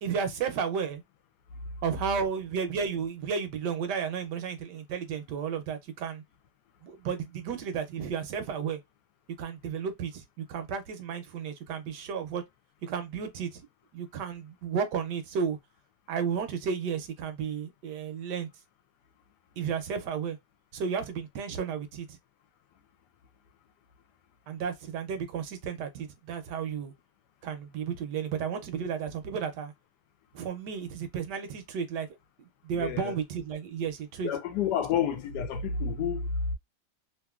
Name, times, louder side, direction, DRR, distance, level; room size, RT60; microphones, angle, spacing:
voice 1, 0.0-1.0 1.8-6.2 6.8-8.8 9.4-12.4 12.8-13.6 13.9-15.6 16.1-18.5 19.6-20.4 20.7-22.2 24.5-26.9 27.4-29.7 30.3-32.1 32.4-34.3 34.9-35.0, right 6 dB, 75° right, 1.2 m, -33 dB
voice 2, 32.8-33.1 34.2-36.5, left 7 dB, 75° left, 1.1 m, -29 dB
2.9 x 2.5 x 2.3 m
omnidirectional pair, 1.9 m